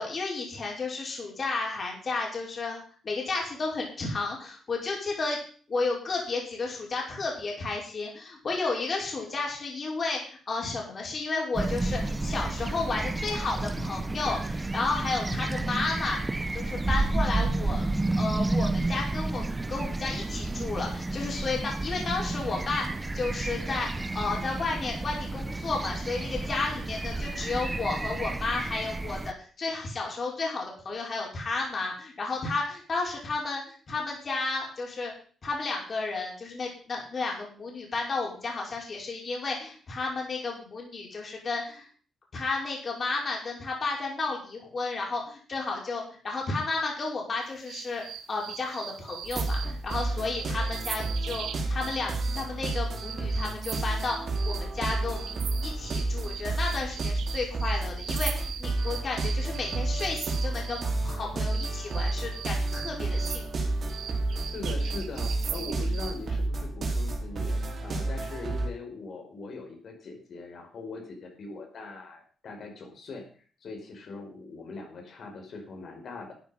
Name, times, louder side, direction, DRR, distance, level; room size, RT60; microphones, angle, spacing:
voice 1, 0.0-5.4 5.7-16.2 16.5-17.8 18.1-35.1 35.4-41.9 42.3-48.0 48.3-55.4 55.6-63.5, left 3 dB, 40° left, -1 dB, 5.4 m, -32 dB
sound 1, 11.6-29.3, right 2 dB, 15° right, 0.9 m, -31 dB
sound 2, 47.7-60.9 61.5-66.2, right 9 dB, 80° right, 1.3 m, -40 dB
sound 3, 49.2-68.7, right 2 dB, 50° right, 4.3 m, -31 dB
voice 2, 64.5-73.2 73.6-76.3, left 3 dB, 55° left, 4 dB, 4.7 m, -41 dB
13.0 x 9.7 x 5.6 m, 0.43 s
cardioid pair, 105°, 0 cm